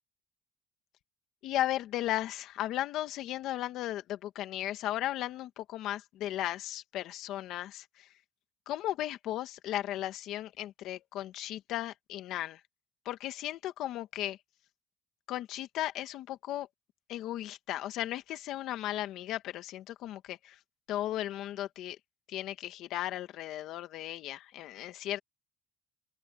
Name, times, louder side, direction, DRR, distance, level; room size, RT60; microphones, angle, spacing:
voice 1, 1.4-8.1 8.7-12.6 13.1-14.4 15.3-16.7 17.1-20.6 20.9-22.0 22.3-25.2, left 13 dB, 65° left, 1.8 m, -36 dB
open air
cardioid pair, 140°, 0 cm